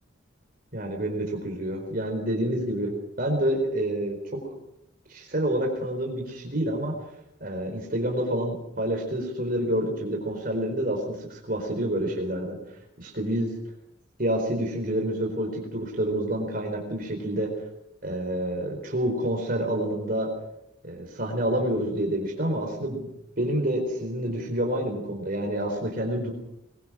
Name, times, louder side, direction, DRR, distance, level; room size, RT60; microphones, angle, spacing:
voice 1, 0.7-2.9 3.2-4.4 5.1-6.9 7.4-13.5 14.2-17.5 18.0-20.3 20.8-23.1 23.4-26.3, right 1 dB, 45° right, 1 dB, 4.3 m, -28 dB
22.5 x 21.5 x 6.1 m, 0.82 s
head